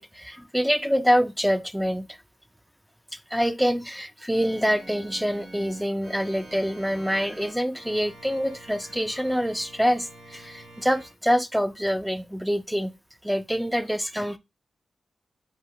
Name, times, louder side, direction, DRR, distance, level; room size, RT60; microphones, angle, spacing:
voice 1, 0.0-2.1 3.3-12.9 13.2-14.4, equal, ahead, 0.3 m, -25 dB
Organ, 4.3-11.1, right 1 dB, 75° right, 1.0 m, -46 dB
2.6 x 2.1 x 2.8 m
cardioid pair, 65°, 0 cm